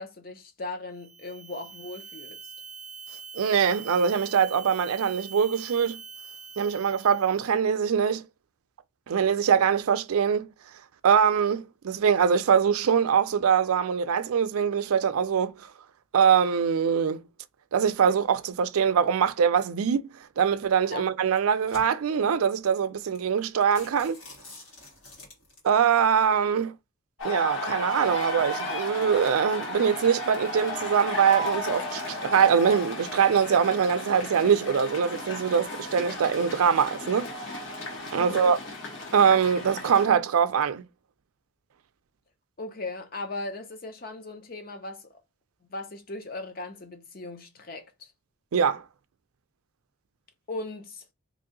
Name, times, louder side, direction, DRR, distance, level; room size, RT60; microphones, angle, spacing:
voice 1, 0.0-2.4 20.9-21.1 38.2-38.5 42.6-45.2 45.7-48.1 50.5-51.0, left 2 dB, 45° left, 0.7 m, -38 dB
sound 1, 0.9-7.5, right 5 dB, 15° right, 0.6 m, -44 dB
voice 2, 3.3-6.0 6.6-8.2 9.1-10.5 11.0-15.5 16.1-17.2 17.7-20.0 20.4-24.2 25.6-26.7 27.2-37.3 38.1-38.6 39.1-40.8 48.5-48.8, right 7 dB, 90° right, 0.4 m, -23 dB
sound 2, 20.4-20.7 21.3-22.2 22.8-22.9 23.2-23.3 23.6-25.8, left 2 dB, 85° left, 1.9 m, -48 dB
sound 3, 27.2-40.1, left 1 dB, 65° left, 1.2 m, -34 dB
3.0 x 2.7 x 3.8 m
head